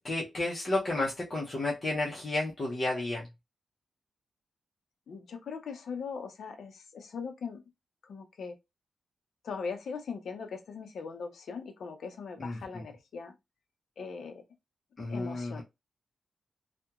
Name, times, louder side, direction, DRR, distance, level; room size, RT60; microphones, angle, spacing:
voice 1, 0.0-3.3 12.4-12.8 15.0-15.6, left 2 dB, 35° left, 0.6 m, -32 dB
voice 2, 5.1-7.6 8.0-8.6 9.4-13.3 14.0-14.4 15.1-15.6, left 5 dB, 75° left, 0.5 m, -40 dB
2.8 x 2.1 x 2.3 m
wide cardioid pair, 150°, 0 cm